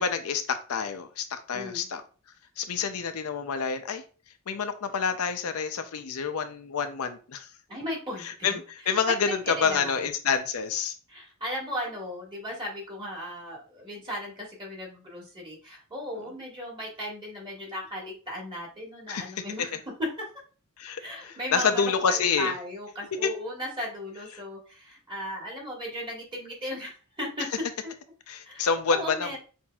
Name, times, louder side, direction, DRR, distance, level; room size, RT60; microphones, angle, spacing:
voice 1, 0.0-2.0 2.6-4.0 4.5-7.5 8.2-10.9 19.1-19.3 20.8-22.5 23.2-23.3 28.3-29.4, left 6 dB, 75° left, 9 dB, 0.5 m, -28 dB
voice 2, 1.5-1.9 7.7-8.6 9.3-10.0 11.1-19.8 21.0-27.5 27.8-27.9 28.4-29.4, equal, 25° right, -2 dB, 1.5 m, -36 dB
5.8 x 2.6 x 2.3 m, 0.37 s
head